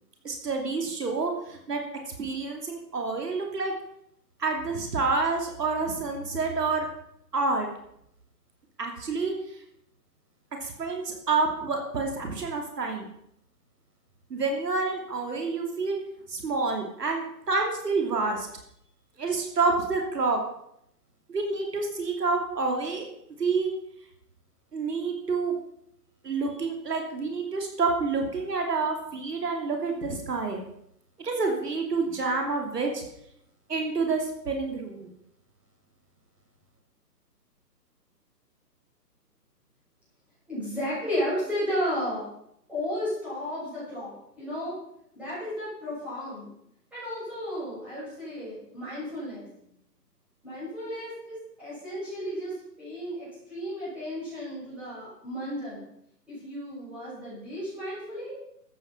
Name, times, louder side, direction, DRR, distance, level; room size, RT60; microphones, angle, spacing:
voice 1, 0.2-1.8 2.2-3.7 4.4-6.9 7.3-7.7 8.8-9.3 10.6-13.1 14.3-16.0 16.3-18.5 19.2-20.4 21.3-23.1 23.4-23.7 24.7-25.5 26.2-30.6 31.2-33.0 33.7-35.1, right 4 dB, 70° right, 2 dB, 2.9 m, -28 dB
voice 2, 40.5-42.2 42.7-44.8 45.1-46.5 46.9-49.4 50.4-55.8 56.3-58.3, equal, ahead, -11 dB, 6.9 m, -33 dB
13.5 x 9.0 x 5.8 m, 0.75 s
hypercardioid pair, 165°, 50 cm